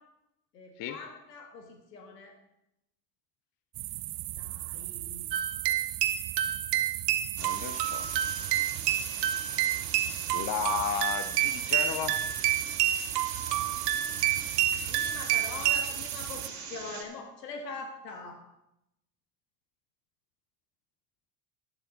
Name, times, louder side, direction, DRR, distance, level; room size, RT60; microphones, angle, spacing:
voice 1, 0.5-2.3 4.3-5.3 7.6-7.7 14.9-18.4, left 4 dB, 90° left, 4 dB, 1.9 m, -43 dB
sound 1, 3.7-16.5, right 18 dB, 50° right, 0.7 m, -38 dB
sound 2, 5.3-15.9, right 12 dB, 80° right, 1.0 m, -29 dB
voice 2, 7.4-8.1 10.3-12.5, left 9 dB, 45° left, 10 dB, 0.9 m, -34 dB
sound 3, 7.4-17.0, right 5 dB, 35° right, 2.5 m, -42 dB
11.0 x 11.0 x 3.9 m, 0.87 s
hypercardioid pair, 70°, 48 cm